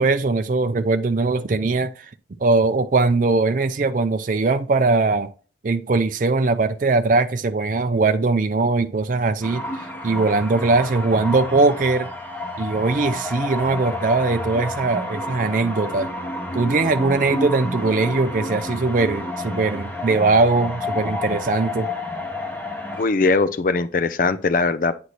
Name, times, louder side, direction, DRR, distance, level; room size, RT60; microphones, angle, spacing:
voice 1, 0.0-2.1 2.4-5.3 5.6-9.6 10.0-12.1 12.6-16.1 16.5-21.9, right 3 dB, 45° right, 0.4 m, -20 dB
sound 1, 9.4-23.1, left 1 dB, 10° left, 1.2 m, -30 dB
voice 2, 23.0-24.9, left 3 dB, 45° left, 0.4 m, -20 dB
9.3 x 3.1 x 4.1 m
head